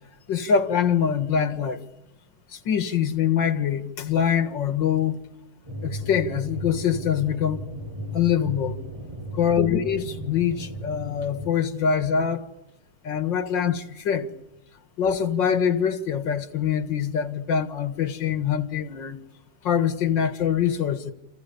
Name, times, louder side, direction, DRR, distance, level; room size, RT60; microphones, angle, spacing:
voice 1, 0.3-1.8 2.5-5.2 5.8-7.7 8.1-8.8 9.4-12.5 13.0-14.3 15.0-19.2 19.6-21.1, left 8 dB, 90° left, 2.4 m, -24 dB
sound 1, 5.6-11.5, equal, 15° right, 6.5 m, -35 dB
28.5 x 28.0 x 7.0 m
omnidirectional pair, 1.9 m